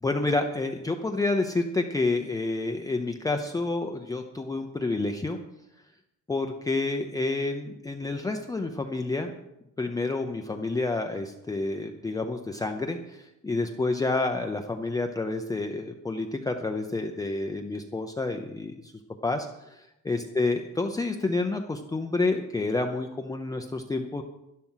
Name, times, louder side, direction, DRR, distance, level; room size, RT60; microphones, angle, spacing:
voice 1, 0.0-5.4 6.3-9.3 9.8-18.9 19.2-24.2, left 3 dB, 10° left, 4 dB, 0.6 m, -29 dB
12.0 x 11.0 x 5.7 m, 0.89 s
cardioid pair, 160°, 32 cm